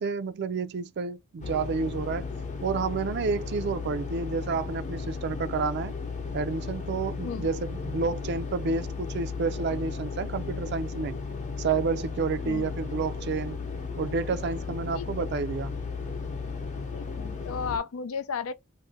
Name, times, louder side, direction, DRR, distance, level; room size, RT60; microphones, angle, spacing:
voice 1, 0.0-2.3 2.6-5.9 6.3-11.2 11.6-13.6 14.0-15.7, right 4 dB, 55° right, 0.4 m, -30 dB
sound 1, 1.4-17.8, left 4 dB, 35° left, 0.7 m, -35 dB
voice 2, 14.9-15.2 16.9-18.5, left 5 dB, 90° left, 0.4 m, -34 dB
2.6 x 2.1 x 3.7 m
head